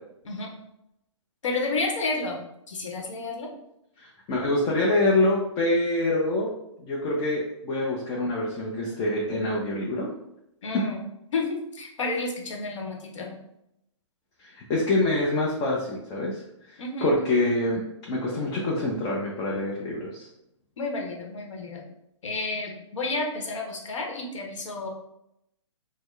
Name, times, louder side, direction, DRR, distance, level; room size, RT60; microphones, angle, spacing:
voice 1, 1.4-2.4 2.7-3.5 10.6-11.0 11.3-13.4 16.8-17.3 20.8-21.8 22.2-24.9, left 3 dB, 75° left, 0 dB, 1.0 m, -31 dB
voice 2, 4.0-6.5 6.8-10.1 14.5-16.4 16.7-20.3, left 2 dB, 25° left, -4 dB, 0.6 m, -26 dB
4.3 x 2.1 x 3.2 m, 0.82 s
hypercardioid pair, 135°, 16 cm